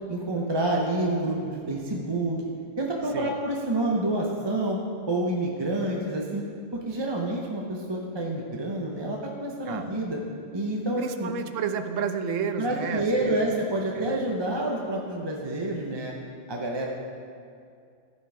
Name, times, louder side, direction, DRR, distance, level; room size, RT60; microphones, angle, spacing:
voice 1, 0.1-2.4 2.8-4.8 5.1-6.4 6.7-10.2 10.5-11.3 12.5-16.1 16.5-16.9, right 1 dB, 25° right, -1 dB, 0.7 m, -28 dB
voice 2, 11.0-13.5 13.9-14.2, right 6 dB, 85° right, 9 dB, 1.0 m, -31 dB
14.0 x 5.1 x 4.7 m, 2.4 s
omnidirectional pair, 1.3 m